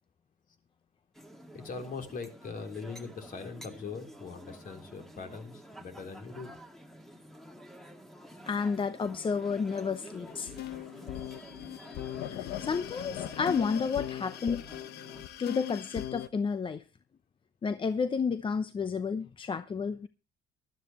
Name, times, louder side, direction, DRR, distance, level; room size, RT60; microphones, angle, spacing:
sound 1, 1.1-15.2, equal, ahead, 2.1 m, -50 dB
voice 1, 1.5-6.6 13.1-13.3, left 4 dB, 55° left, 3.6 m, -41 dB
voice 2, 8.5-10.5 12.4-14.6 15.4-16.8 17.6-20.1, left 5 dB, 30° left, 0.7 m, -31 dB
sound 2, 10.3-16.3, left 12 dB, 75° left, 1.1 m, -39 dB
19.0 x 12.5 x 3.0 m
cardioid pair, 110°, 17 cm